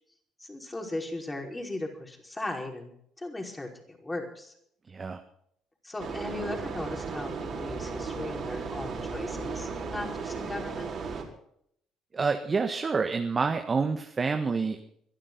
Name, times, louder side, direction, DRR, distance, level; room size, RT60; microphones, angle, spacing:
voice 1, 0.4-2.9 3.2-4.5 5.8-10.9, left 2 dB, 20° left, 2 dB, 5.3 m, -37 dB
voice 2, 4.9-5.2 12.1-14.9, right 4 dB, 35° right, 6 dB, 1.5 m, -28 dB
sound 1, 6.0-11.2, right 5 dB, 50° right, 4.8 m, -35 dB
23.0 x 12.0 x 4.1 m, 0.68 s
hypercardioid pair, 55°, 0 cm